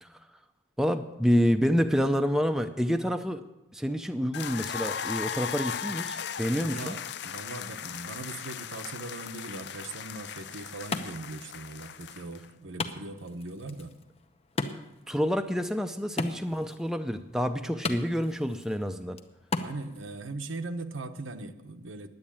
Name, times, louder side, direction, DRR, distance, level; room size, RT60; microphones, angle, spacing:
voice 1, 0.8-3.4 3.7-7.0 15.1-19.2, equal, 5° right, 7 dB, 0.5 m, -28 dB
sound 1, 4.3-12.5, left 8 dB, 60° left, 0.4 m, -37 dB
voice 2, 6.6-13.9 19.6-22.1, right 2 dB, 90° right, 7 dB, 0.9 m, -40 dB
Wood, 10.1-20.1, left 3 dB, 30° left, 0.7 m, -39 dB
10.5 x 8.4 x 8.6 m, 0.95 s
head